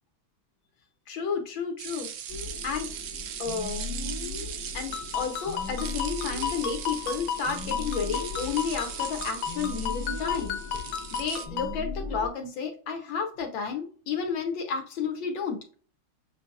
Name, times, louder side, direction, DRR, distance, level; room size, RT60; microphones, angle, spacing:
voice 1, 1.1-2.1 2.6-2.9 3.4-4.5 4.7-10.6 11.1-15.6, left 6 dB, 70° left, 4 dB, 1.4 m, -32 dB
sound 1, 1.8-11.5, right 9 dB, 70° right, 1.2 m, -39 dB
sound 2, 2.3-12.3, left 4 dB, 25° left, 1.0 m, -38 dB
Ringtone, 4.9-11.8, left 8 dB, 85° left, 1.6 m, -34 dB
7.0 x 2.7 x 2.3 m, 0.41 s
omnidirectional pair, 2.4 m